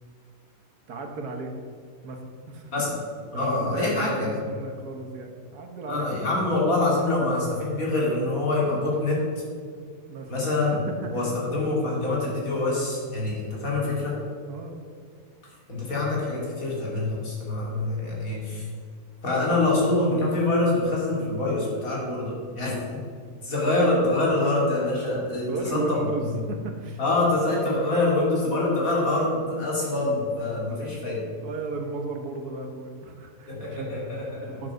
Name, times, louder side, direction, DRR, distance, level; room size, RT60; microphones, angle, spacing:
voice 1, 0.9-1.5 2.0-2.7 3.3-6.2 10.1-10.3 11.0-11.3 14.5-14.8 25.5-27.0 27.5-27.8 31.4-33.9 34.5-34.7, right 3 dB, 80° right, 3 dB, 1.8 m, -35 dB
voice 2, 3.3-4.4 5.9-9.2 10.3-10.7 11.1-14.2 15.7-18.7 19.2-22.8 23.4-26.3 27.0-31.2 33.5-34.6, left 2 dB, 65° left, -4 dB, 3.1 m, -25 dB
9.5 x 7.3 x 6.3 m, 2.1 s
omnidirectional pair, 1.6 m